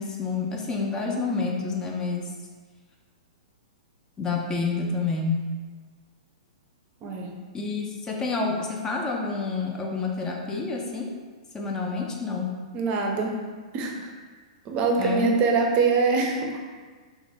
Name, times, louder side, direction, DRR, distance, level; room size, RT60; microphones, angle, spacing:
voice 1, 0.0-2.3 4.2-5.5 7.5-11.1 11.5-12.5 15.0-15.4, left 4 dB, 15° left, 0 dB, 0.4 m, -28 dB
voice 2, 12.7-13.4 13.7-14.1 14.7-16.6, right 4 dB, 35° right, 1 dB, 0.5 m, -24 dB
3.5 x 2.1 x 3.3 m, 1.5 s
hypercardioid pair, 130°, 4 cm